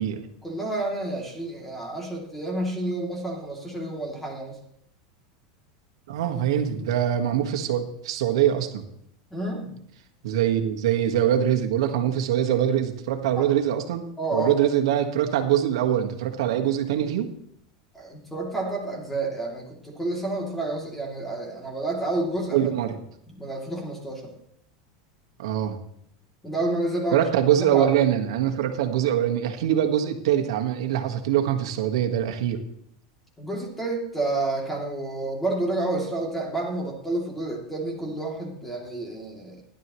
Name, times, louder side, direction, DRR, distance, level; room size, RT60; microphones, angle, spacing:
voice 1, 0.4-4.6 9.3-9.8 13.4-13.5 14.2-14.5 17.9-22.7 23.3-24.3 26.4-27.3 27.7-27.9 33.4-39.6, right 2 dB, 5° left, -1 dB, 2.9 m, -29 dB
voice 2, 6.1-8.8 10.2-14.0 14.3-17.3 22.5-23.0 25.4-25.8 27.1-32.6, right 10 dB, 80° right, 4 dB, 1.6 m, -23 dB
16.0 x 11.5 x 3.1 m, 0.72 s
supercardioid pair, 145°, 3 cm